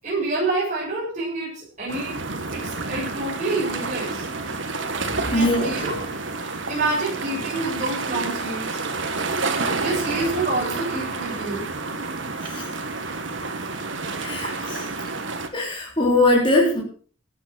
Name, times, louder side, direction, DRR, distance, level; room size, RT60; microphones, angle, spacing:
voice 1, 0.0-2.2 2.5-4.3 5.2-6.0 6.3-8.8 9.8-11.6, right 2 dB, 35° right, -6 dB, 7.4 m, -27 dB
sound 1, 1.9-15.5, right 3 dB, 70° right, 1.7 m, -29 dB
voice 2, 5.0-5.7 12.4-12.7 14.2-14.8 15.5-16.8, left 2 dB, 25° left, -3 dB, 3.9 m, -21 dB
14.5 x 9.3 x 6.3 m, 0.43 s
head